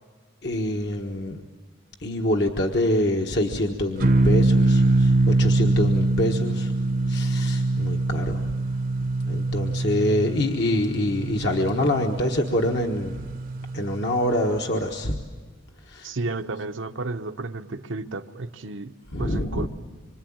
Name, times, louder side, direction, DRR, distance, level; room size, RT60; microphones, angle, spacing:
voice 1, 0.4-1.4 2.0-6.7 7.1-8.5 9.2-13.4 13.7-15.2 15.8-16.1 19.1-19.7, left 1 dB, 55° left, 1.4 m, -25 dB
sound 1, 4.0-14.5, right 2 dB, 45° right, 0.8 m, -23 dB
voice 2, 16.0-19.7, right 3 dB, 75° right, 0.9 m, -32 dB
26.5 x 24.5 x 8.8 m
head